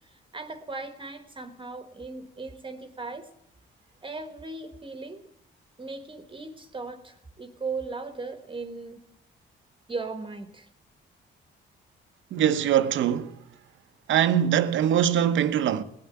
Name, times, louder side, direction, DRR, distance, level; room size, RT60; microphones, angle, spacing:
voice 1, 0.0-3.3 4.0-5.2 5.8-9.0 9.9-10.7, right 3 dB, 25° right, 1.3 m, -37 dB
voice 2, 12.3-13.4 14.1-15.8, right 10 dB, 75° right, 0.9 m, -22 dB
18.5 x 8.8 x 8.6 m
cardioid pair, 90°, 20 cm